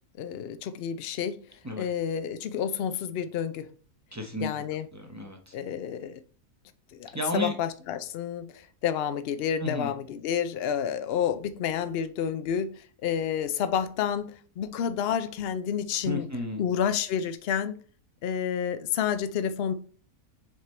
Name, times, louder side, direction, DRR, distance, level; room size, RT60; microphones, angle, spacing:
voice 1, 0.2-1.4 1.8-3.7 4.4-4.9 5.5-6.2 6.9-16.3 16.6-17.8 18.2-19.7, left 8 dB, 75° left, 0.5 m, -30 dB
voice 2, 4.1-4.5 4.9-5.6 7.1-7.6 9.6-9.9 16.1-16.6, left 1 dB, 20° right, 0.5 m, -32 dB
6.3 x 3.7 x 4.3 m
omnidirectional pair, 1.7 m